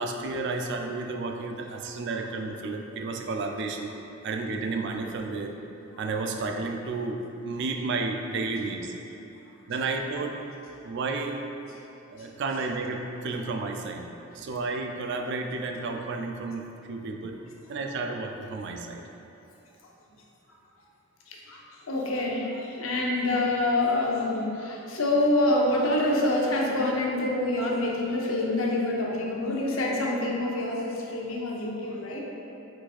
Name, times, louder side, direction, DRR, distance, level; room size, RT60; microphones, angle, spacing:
voice 1, 0.0-3.9 4.2-5.5 6.0-8.9 9.7-10.4 10.8-11.4 12.1-14.1 14.3-17.4 17.7-19.0, right 3 dB, 60° right, 3 dB, 0.4 m, -32 dB
voice 2, 21.3-21.6 21.9-32.3, left 1 dB, 80° left, -2 dB, 0.7 m, -26 dB
4.7 x 4.1 x 2.4 m, 2.9 s
head